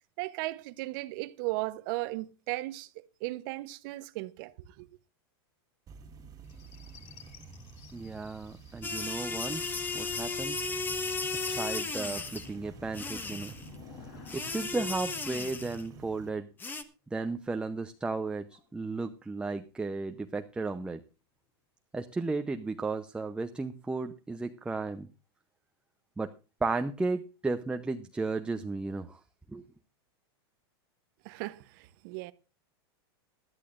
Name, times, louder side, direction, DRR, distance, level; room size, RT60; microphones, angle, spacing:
voice 1, 0.2-2.9 3.2-4.5 4.8-4.9 31.2-32.3, right 20 dB, 55° right, 0.9 m, -36 dB
sound 1, 5.9-16.3, right 4 dB, 25° right, 2.0 m, -50 dB
sound 2, 6.4-16.2 17.9-18.8 19.8-21.0, left 6 dB, 50° left, 3.6 m, -56 dB
voice 2, 7.9-10.6 11.5-13.5 14.3-16.5 17.1-21.0 21.9-25.1 26.2-26.3 26.6-29.2 29.5-29.6, right 3 dB, 5° right, 0.7 m, -34 dB
sound 3, 8.8-12.5 12.9-13.7 14.3-15.9 16.6-16.8, left 3 dB, 15° left, 1.3 m, -35 dB
19.5 x 13.0 x 2.5 m
supercardioid pair, 130°, 14 cm